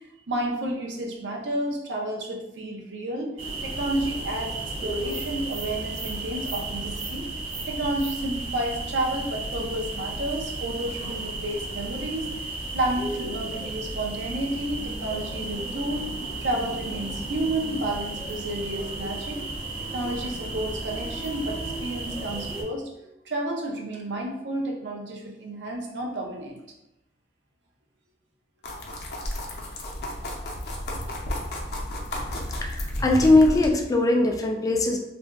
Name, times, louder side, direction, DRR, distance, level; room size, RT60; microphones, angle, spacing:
voice 1, 0.3-3.3 3.6-4.5 4.8-7.3 7.7-12.5 12.7-16.1 16.4-19.4 19.9-26.6, right 1 dB, 85° right, 0 dB, 0.6 m, -31 dB
sound 1, 3.4-22.6, right 2 dB, 35° right, 0.6 m, -34 dB
sound 2, 28.6-33.7, left 1 dB, 65° left, 0.6 m, -32 dB
voice 2, 32.6-35.0, left 2 dB, 20° left, 1 dB, 0.3 m, -20 dB
2.4 x 2.2 x 3.4 m, 0.92 s
head